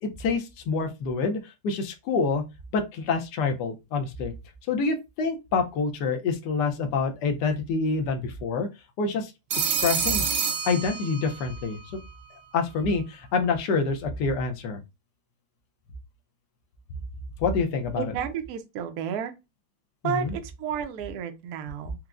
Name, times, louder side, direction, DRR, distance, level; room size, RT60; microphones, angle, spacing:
voice 1, 0.2-1.4 1.6-2.4 2.7-4.3 4.7-8.7 9.0-9.3 9.6-10.3 10.6-12.0 12.5-14.8 17.4-18.1 20.0-20.3, left 4 dB, 70° left, 1.0 m, -27 dB
Telephone, 9.5-11.6, right 7 dB, 90° right, 1.4 m, -27 dB
voice 2, 18.0-19.3 20.0-21.9, right 8 dB, 70° right, 0.9 m, -32 dB
4.5 x 2.0 x 2.4 m
omnidirectional pair, 2.2 m